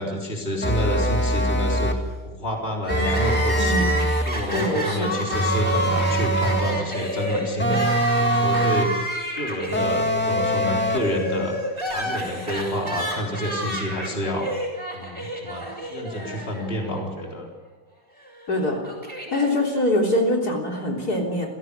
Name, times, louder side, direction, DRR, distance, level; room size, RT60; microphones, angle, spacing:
voice 1, 0.0-9.1 9.3-11.6 11.8-14.5 14.9-17.5, equal, 30° left, 0 dB, 4.0 m, -29 dB
sound 1, 0.6-2.1 2.9-4.4 5.3-6.8 7.6-9.0 9.7-11.2, right 1 dB, 5° left, 1.8 m, -23 dB
Crying sobbing, 2.8-17.0 17.3-17.4 18.3-19.5, equal, 15° right, 6.9 m, -30 dB
voice 2, 3.6-4.0 4.5-5.1 18.5-18.8 19.3-21.5, left 1 dB, 55° left, 0 dB, 4.1 m, -23 dB
29.5 x 17.0 x 6.8 m, 1.2 s
omnidirectional pair, 2.0 m